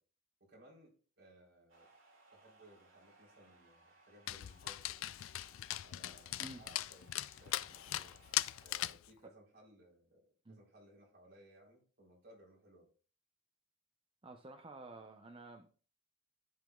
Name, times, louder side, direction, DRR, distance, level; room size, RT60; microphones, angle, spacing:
voice 1, 0.4-1.9 2.3-5.1 5.8-8.2 8.6-12.9, right 1 dB, 55° right, -3 dB, 3.5 m, -62 dB
sound 1, 1.7-8.7, right 3 dB, 85° right, 2.1 m, -65 dB
Dog, 4.3-9.1, left 14 dB, 90° left, 0.4 m, -40 dB
voice 2, 14.2-15.7, right 2 dB, 25° right, 3 dB, 0.6 m, -51 dB
14.0 x 5.0 x 2.3 m, 0.40 s
head